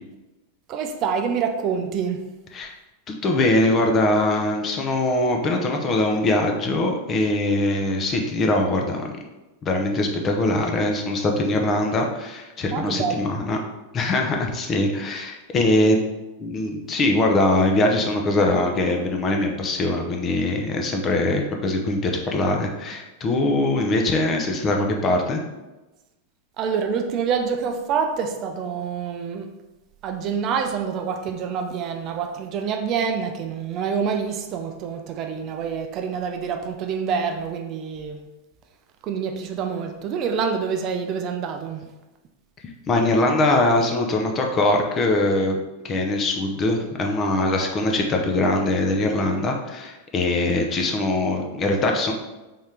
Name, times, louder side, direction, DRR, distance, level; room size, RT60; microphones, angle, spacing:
voice 1, 0.7-2.3 12.7-13.2 26.6-29.5 30.0-38.3 39.0-41.9, right 6 dB, 35° right, 0.4 m, -26 dB
voice 2, 3.1-9.1 9.6-13.6 13.9-16.0 16.4-25.4 42.9-45.6 45.8-52.1, left 2 dB, 25° left, 0.7 m, -22 dB
4.1 x 3.7 x 3.4 m
figure-of-eight pair, 90°, 0 cm